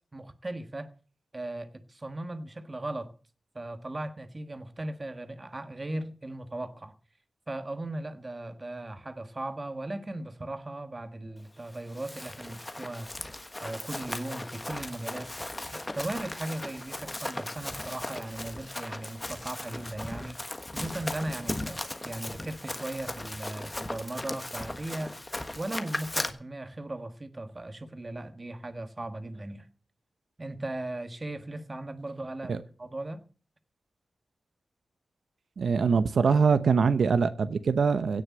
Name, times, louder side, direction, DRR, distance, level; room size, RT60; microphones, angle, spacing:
voice 1, 0.1-0.9 1.3-3.1 3.5-6.9 7.5-13.1 13.6-15.3 15.9-25.3 25.5-29.7 30.4-33.2, right 1 dB, 25° right, 1.4 m, -37 dB
Run, 11.7-26.3, left 1 dB, 15° left, 1.3 m, -37 dB
voice 2, 35.6-38.2, right 5 dB, 70° right, 0.9 m, -23 dB
17.0 x 6.6 x 8.6 m
wide cardioid pair, 165°, 0 cm